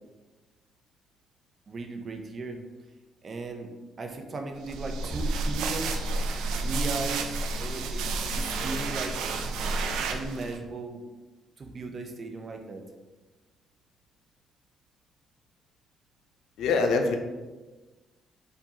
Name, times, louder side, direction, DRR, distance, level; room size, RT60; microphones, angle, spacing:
voice 1, 1.7-2.6 3.2-3.7 4.0-5.9 6.6-9.3 10.1-11.0 11.6-12.8, right 3 dB, 45° right, 4 dB, 0.7 m, -36 dB
sound 1, 4.6-10.6, right 3 dB, 90° right, 0.4 m, -30 dB
voice 2, 16.6-17.2, left 4 dB, 80° left, 4 dB, 0.6 m, -24 dB
4.4 x 4.0 x 2.8 m, 1.2 s
cardioid pair, 90°, 0 cm